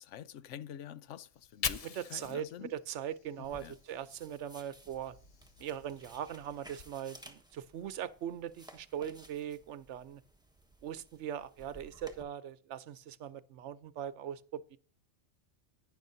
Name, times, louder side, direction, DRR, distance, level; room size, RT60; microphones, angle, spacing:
voice 1, 0.0-2.7 3.4-3.8, left 10 dB, 85° left, 1.0 m, -47 dB
Fire, 1.2-4.4 4.8-6.8, left 6 dB, 45° left, 0.5 m, -44 dB
voice 2, 1.8-5.2 5.6-10.2 10.8-14.8, right 10 dB, 75° right, 1.0 m, -40 dB
sound 1, 3.4-12.2, right 1 dB, 5° right, 1.2 m, -57 dB
12.0 x 9.8 x 2.7 m
omnidirectional pair, 1.2 m